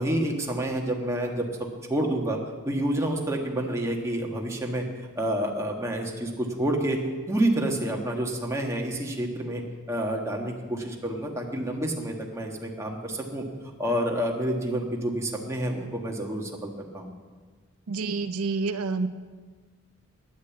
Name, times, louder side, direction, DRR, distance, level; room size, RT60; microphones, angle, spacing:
voice 1, 0.0-1.4 1.9-2.4 2.6-4.8 5.1-7.0 7.3-9.6 9.9-13.4 13.8-17.1, right 1 dB, 15° right, 0 dB, 1.6 m, -28 dB
voice 2, 17.9-19.1, right 4 dB, 80° right, 10 dB, 0.6 m, -28 dB
10.5 x 9.5 x 8.3 m, 1.5 s
head